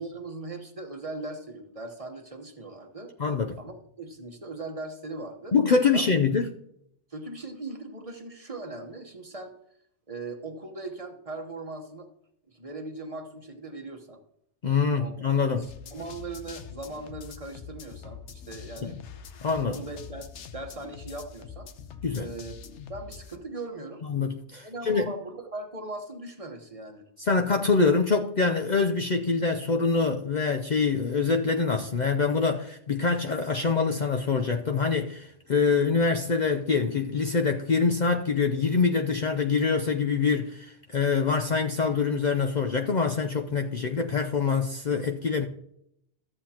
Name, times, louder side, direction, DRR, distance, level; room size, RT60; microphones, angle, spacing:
voice 1, 0.0-3.1 3.6-5.6 5.9-6.0 7.1-9.5 10.1-12.1 12.5-14.2 15.0-19.0 19.6-20.3 20.5-21.7 22.1-22.5 22.9-24.0 24.6-27.1, right 2 dB, 35° right, 1.0 m, -39 dB
voice 2, 3.2-3.6 5.5-6.5 14.6-15.7 18.8-19.0 19.4-19.8 22.0-22.3 24.1-25.1 27.2-45.5, left 4 dB, 50° left, 0.6 m, -25 dB
sound 1, 15.6-23.4, left 7 dB, 90° left, 1.1 m, -44 dB
14.0 x 7.7 x 2.8 m
omnidirectional pair, 1.2 m